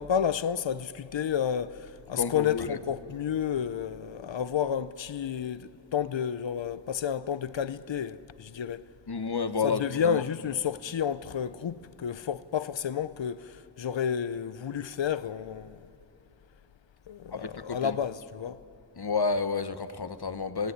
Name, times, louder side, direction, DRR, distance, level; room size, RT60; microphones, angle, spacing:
voice 1, 0.0-8.8 9.6-15.8 17.1-18.6, left 8 dB, 85° left, 0.6 m, -31 dB
voice 2, 2.1-2.8 9.1-10.2 17.3-18.0 19.0-20.7, left 4 dB, 60° left, 1.1 m, -30 dB
28.5 x 17.0 x 9.8 m
wide cardioid pair, 45°, 44 cm